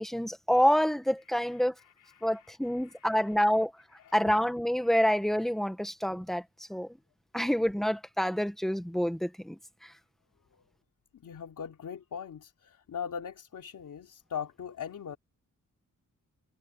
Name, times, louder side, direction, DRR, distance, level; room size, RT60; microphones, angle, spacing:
voice 1, 0.0-1.7 2.2-3.7 4.1-6.4 6.7-6.9 7.3-9.9, equal, ahead, 1.6 m, -27 dB
voice 2, 1.3-3.4 4.0-4.4 10.5-10.6 11.1-15.2, left 7 dB, 75° left, 3.2 m, -41 dB
wide cardioid pair, 165°, 31 cm